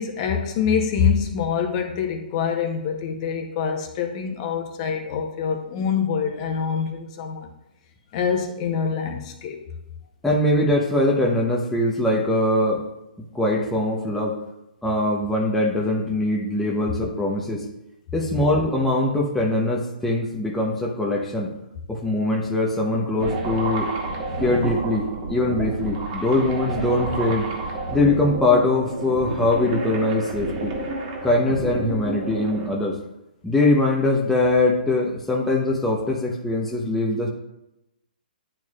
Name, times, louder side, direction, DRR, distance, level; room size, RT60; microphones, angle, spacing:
voice 1, 0.0-7.5 8.1-9.6, left 6 dB, 40° left, 4 dB, 1.1 m, -25 dB
voice 2, 10.2-12.8 13.3-14.3 14.8-17.6 18.1-21.5 21.9-23.9 24.3-27.5 27.9-30.7 31.2-33.0 33.4-37.3, left 2 dB, 5° left, -2 dB, 0.9 m, -22 dB
sound 1, 23.2-32.7, right 2 dB, 40° right, 1.7 m, -30 dB
10.5 x 4.5 x 2.4 m, 0.89 s
hypercardioid pair, 140°, 5 cm